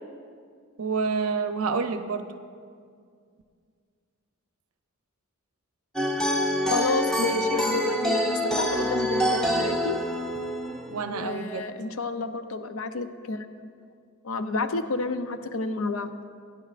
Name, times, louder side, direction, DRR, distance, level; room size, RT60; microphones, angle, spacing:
voice 1, 0.8-2.2 10.9-11.6, right 5 dB, 90° right, 8 dB, 0.7 m, -28 dB
sound 1, 6.0-11.0, equal, ahead, 0.6 m, -26 dB
voice 2, 6.7-10.0 11.1-13.5 14.2-16.1, left 3 dB, 70° left, 9 dB, 0.6 m, -30 dB
18.0 x 9.9 x 2.5 m, 2.2 s
head